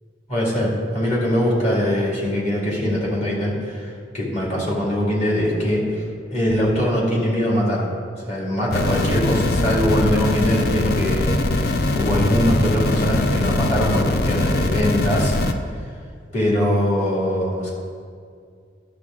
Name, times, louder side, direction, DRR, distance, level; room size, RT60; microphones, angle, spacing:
voice 1, 0.3-6.0 6.3-7.9 8.2-15.4 16.3-17.7, equal, 40° left, -4 dB, 2.2 m, -22 dB
sound 1, 8.7-15.5, left 2 dB, 55° left, 0.5 m, -21 dB
11.0 x 6.7 x 3.7 m, 2.2 s
head